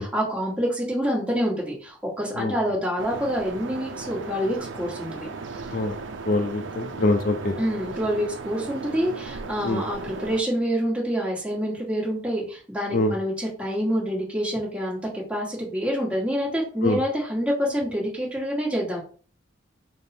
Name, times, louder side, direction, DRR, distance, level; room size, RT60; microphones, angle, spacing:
voice 1, 0.0-5.3 7.6-19.0, equal, 5° right, -5 dB, 1.2 m, -27 dB
sound 1, 3.0-10.4, right 4 dB, 70° right, 0.5 m, -36 dB
voice 2, 6.3-7.6 9.6-9.8 12.9-13.1 16.8-17.0, left 2 dB, 45° left, 5 dB, 0.4 m, -24 dB
5.1 x 2.0 x 4.2 m, 0.42 s
head